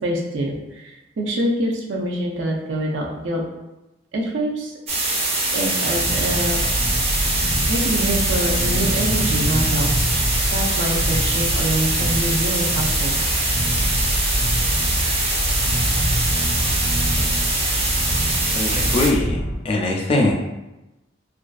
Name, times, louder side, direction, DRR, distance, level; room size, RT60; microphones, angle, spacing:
voice 1, 0.0-3.4 4.1-4.7 5.5-6.6 7.7-10.0 10.5-13.2, right 1 dB, 85° right, -1 dB, 0.5 m, -25 dB
sound 1, 4.9-19.1, right 2 dB, 35° right, 0.5 m, -23 dB
sound 2, 5.9-19.6, equal, 80° left, 0.6 m, -25 dB
voice 2, 18.5-19.4 19.6-20.3, left 2 dB, 30° left, 0 dB, 0.4 m, -21 dB
2.5 x 2.2 x 2.3 m, 0.99 s
head